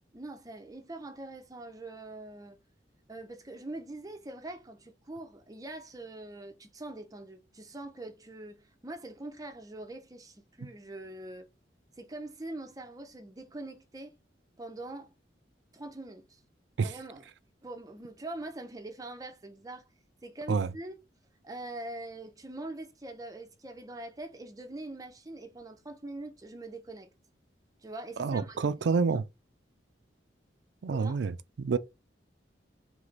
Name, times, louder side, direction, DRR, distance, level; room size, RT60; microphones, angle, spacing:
voice 1, 0.1-2.6 3.1-11.5 12.0-14.1 14.6-15.1 15.7-16.4 16.8-17.3 17.6-19.9 20.2-21.0 21.4-27.1 27.8-29.2 30.9-31.2, right 2 dB, 20° right, 0.5 m, -43 dB
voice 2, 28.2-29.2 30.8-31.3 31.6-31.8, right 5 dB, 75° right, 0.4 m, -27 dB
3.3 x 3.3 x 3.8 m
head